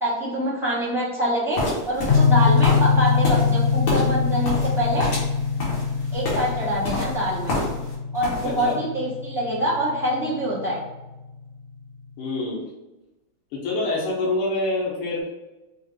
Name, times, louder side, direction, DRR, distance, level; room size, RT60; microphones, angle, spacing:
voice 1, 0.0-5.1 6.1-7.5 8.1-10.8, equal, 5° right, -8 dB, 0.3 m, -25 dB
sound 1, 1.5-8.7, left 1 dB, 60° left, 2.0 m, -29 dB
sound 2, 2.1-10.8, left 5 dB, 40° left, 1.3 m, -23 dB
voice 2, 8.4-8.8 12.2-12.6 13.5-15.2, left 2 dB, 90° left, -5 dB, 1.8 m, -26 dB
5.5 x 2.1 x 3.3 m, 1.0 s
omnidirectional pair, 2.4 m